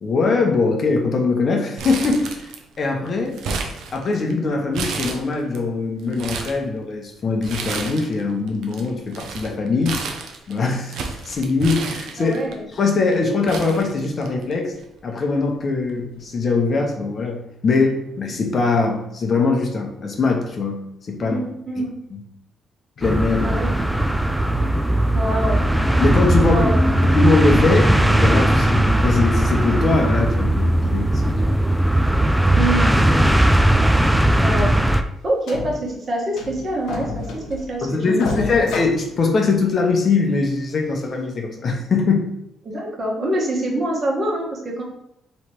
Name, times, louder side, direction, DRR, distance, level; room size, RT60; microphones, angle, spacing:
voice 1, 0.0-2.3 2.8-3.4 3.9-10.0 10.5-12.3 12.8-14.7 15.0-20.8 21.1-21.4 22.1-22.2 23.0-23.5 26.0-26.6 27.1-31.4 37.8-42.3, left 3 dB, 45° left, 2 dB, 0.8 m, -21 dB
Crumpling crinkling, 1.8-2.8 3.1-4.3 4.7-5.6 6.0-6.6 7.4-8.2 8.5-12.5 13.1-13.2 13.5-14.5 14.8-14.9 15.9-16.1, right 4 dB, 80° right, 0.6 m, -31 dB
voice 2, 12.2-12.7 21.2-22.0 23.4-23.8 25.1-25.6 26.5-27.1 32.5-32.9 34.4-38.7 42.6-44.8, right 1 dB, 40° right, -2 dB, 1.3 m, -26 dB
sound 1, 23.0-35.0, right 1 dB, 5° right, 0.3 m, -18 dB
sound 2, 35.0-35.1 35.5-36.0 36.4-37.8 38.2-39.8 40.3-40.4 41.0-41.1, left 3 dB, 85° left, 0.9 m, -30 dB
3.2 x 3.2 x 4.4 m, 0.80 s
cardioid pair, 90°, 0 cm